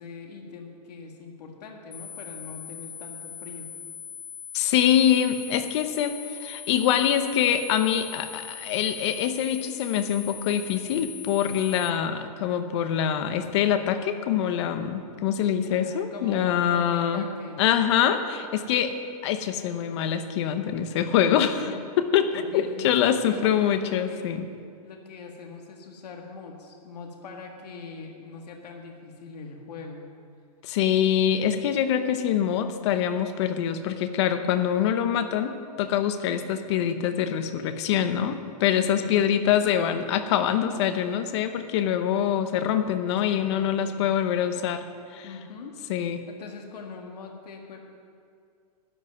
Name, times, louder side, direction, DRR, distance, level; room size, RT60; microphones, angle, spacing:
voice 1, 0.0-3.7 15.7-17.6 21.5-21.8 22.3-24.3 24.8-30.0 38.8-39.2 42.5-44.1 45.2-45.8 46.3-47.8, left 4 dB, 80° left, 2 dB, 1.9 m, -42 dB
sound 1, 1.9-11.9, left 8 dB, 10° left, 0.4 m, -41 dB
voice 2, 4.5-17.2 17.6-18.9 19.2-21.7 22.0-24.5 30.6-44.8 45.1-45.3 45.9-46.2, left 9 dB, 45° left, 9 dB, 0.8 m, -24 dB
13.0 x 5.4 x 9.2 m, 2.3 s
hypercardioid pair, 155°, 20 cm